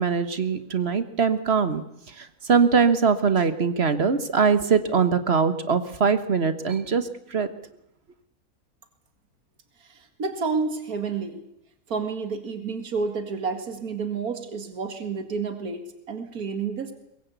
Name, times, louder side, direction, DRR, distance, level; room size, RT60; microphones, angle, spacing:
voice 1, 0.0-1.8 2.1-7.5, right 5 dB, 45° right, 11 dB, 1.6 m, -22 dB
voice 2, 9.8-11.4 11.9-16.9, right 5 dB, 70° right, 7 dB, 2.6 m, -30 dB
23.0 x 21.5 x 8.3 m, 0.81 s
omnidirectional pair, 1.6 m